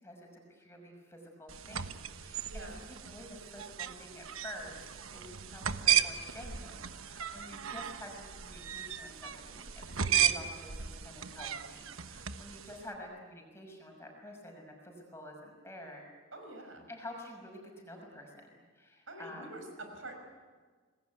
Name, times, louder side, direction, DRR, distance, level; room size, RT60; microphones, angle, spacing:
voice 1, 0.0-16.0 16.9-19.6, left 1 dB, 10° left, 1 dB, 6.1 m, -49 dB
sound 1, 1.5-12.8, right 9 dB, 85° right, 1.2 m, -35 dB
voice 2, 2.5-2.8 10.0-10.3 16.3-16.9 19.1-20.2, right 1 dB, 70° right, 4 dB, 5.8 m, -46 dB
27.0 x 20.5 x 9.4 m, 1.5 s
head